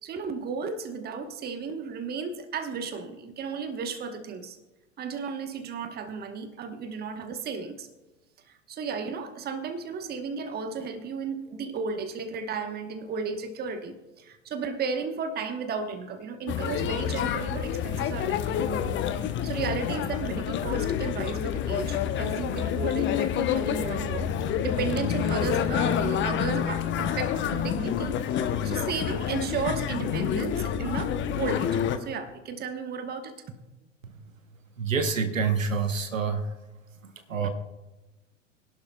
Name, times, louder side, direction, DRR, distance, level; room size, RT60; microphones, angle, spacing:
voice 1, 0.0-4.6 5.0-7.9 8.5-19.0 19.4-28.3 28.6-31.7 32.0-33.6, right 5 dB, 25° right, 1.1 m, -34 dB
sound 1, 16.5-32.0, left 9 dB, 30° left, 0.9 m, -28 dB
voice 2, 34.8-36.5 37.0-37.5, right 5 dB, 80° right, 1.1 m, -27 dB
24.0 x 11.5 x 2.3 m
figure-of-eight pair, 90°, 39 cm